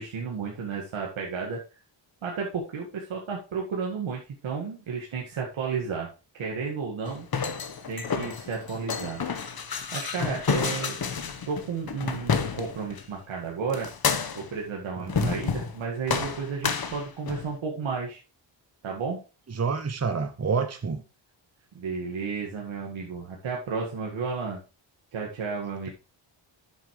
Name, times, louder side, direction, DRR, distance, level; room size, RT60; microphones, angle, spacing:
voice 1, 0.0-1.6 2.2-6.1 6.3-7.3 7.9-9.2 9.9-11.0 11.5-13.9 14.3-18.2 18.8-19.2 21.7-24.6 25.1-25.9, right 5 dB, 90° right, 1.9 m, -32 dB
sound 1, 7.1-13.0 13.7-14.6 15.1-15.8 16.1-17.5, left 6 dB, 50° left, 1.2 m, -30 dB
voice 2, 15.0-15.3 19.5-21.0, right 5 dB, 35° right, 1.2 m, -28 dB
10.5 x 7.3 x 3.2 m
cardioid pair, 85°, 46 cm